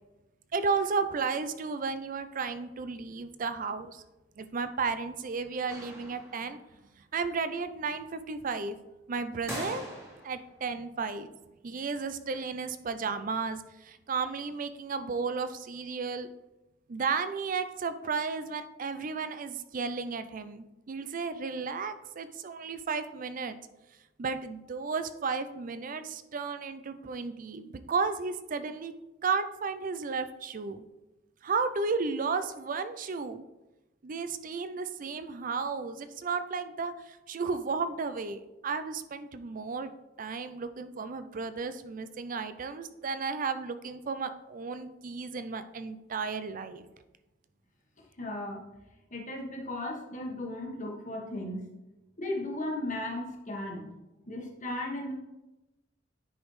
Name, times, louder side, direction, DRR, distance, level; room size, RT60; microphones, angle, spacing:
voice 1, 0.5-4.0 4.4-6.6 7.1-8.8 9.1-9.8 10.2-11.3 11.6-16.3 16.9-23.6 24.2-28.9 29.2-30.8 31.4-33.4 34.0-39.9 40.2-46.8, right 4 dB, 45° right, 11 dB, 0.5 m, -33 dB
sound 1, 5.7-6.7 9.5-10.5, equal, 15° right, 1.7 m, -41 dB
voice 2, 48.2-48.6 49.1-51.7 52.2-53.9 54.3-55.1, left 1 dB, 40° left, 0 dB, 1.4 m, -36 dB
9.6 x 5.2 x 3.2 m, 1.0 s
head